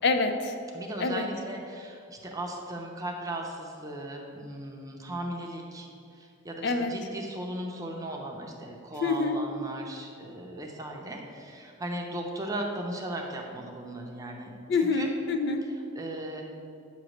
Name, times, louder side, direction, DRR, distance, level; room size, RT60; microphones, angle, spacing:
voice 1, 0.0-0.5 1.0-1.2 6.6-6.9 9.0-9.4 14.7-15.6, left 3 dB, 50° left, 6 dB, 0.4 m, -26 dB
voice 2, 0.7-15.1 15.7-16.4, right 1 dB, 15° right, 0 dB, 0.6 m, -37 dB
8.5 x 3.0 x 6.3 m, 2.6 s
head